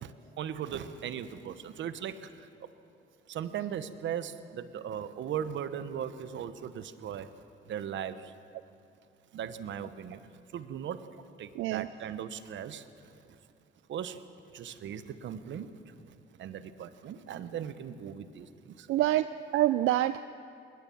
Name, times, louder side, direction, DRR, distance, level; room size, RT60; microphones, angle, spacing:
voice 1, 0.0-2.7 3.3-7.3 7.6-8.3 9.3-10.2 10.5-11.1 11.4-13.4 13.9-14.2 14.5-19.2, right 9 dB, 70° right, 12 dB, 1.1 m, -38 dB
voice 2, 18.9-20.2, right 14 dB, 90° right, 13 dB, 0.5 m, -26 dB
20.5 x 19.0 x 7.1 m, 2.6 s
cardioid pair, 90°, 20 cm